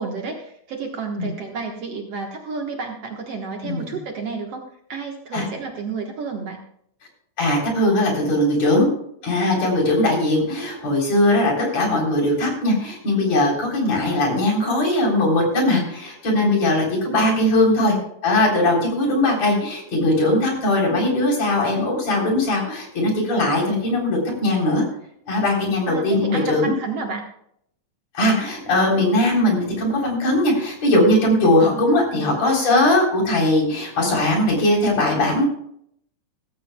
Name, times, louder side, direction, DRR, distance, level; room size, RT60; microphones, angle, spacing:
voice 1, 0.0-6.6 17.1-17.6 25.9-27.3 31.7-32.4, right 4 dB, 55° right, 2 dB, 2.1 m, -31 dB
voice 2, 7.4-8.9 9.2-17.9 18.2-24.8 25.3-26.7 28.1-35.4, left 1 dB, 55° left, -1 dB, 4.8 m, -20 dB
16.5 x 15.5 x 2.3 m, 0.69 s
omnidirectional pair, 3.8 m